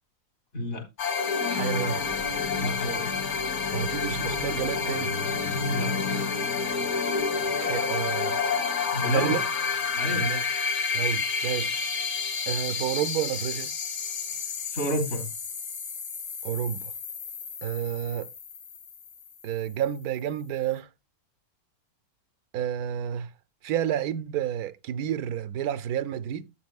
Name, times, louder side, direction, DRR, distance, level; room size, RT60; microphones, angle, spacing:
voice 1, 0.5-0.8 2.6-3.1 5.7-6.3 8.9-9.4 9.9-10.3 14.7-15.3, equal, 55° left, 3.4 m, -30 dB
sound 1, 1.0-19.5, left 5 dB, 75° left, 2.0 m, -29 dB
voice 2, 1.5-2.0 3.7-5.1 6.5-6.6 7.6-8.4 9.0-9.5 10.1-10.4 10.9-11.9 12.5-13.7 16.4-16.9 17.6-18.3 19.4-20.9 22.5-23.3 23.6-26.5, right 10 dB, 90° right, 1.2 m, -30 dB
12.0 x 8.6 x 2.2 m
omnidirectional pair, 1.6 m